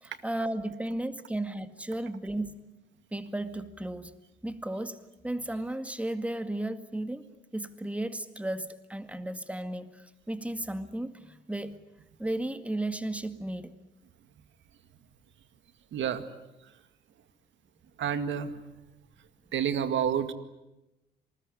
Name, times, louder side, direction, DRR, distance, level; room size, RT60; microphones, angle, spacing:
voice 1, 0.0-2.6 3.1-4.1 4.4-11.8 12.2-13.7, right 1 dB, 5° right, 10 dB, 2.0 m, -34 dB
voice 2, 15.9-16.2 16.6-16.8 18.0-18.6 19.2-20.3, right 8 dB, 70° right, 10 dB, 2.1 m, -30 dB
27.0 x 21.0 x 9.9 m, 0.95 s
cardioid pair, 90°, 20 cm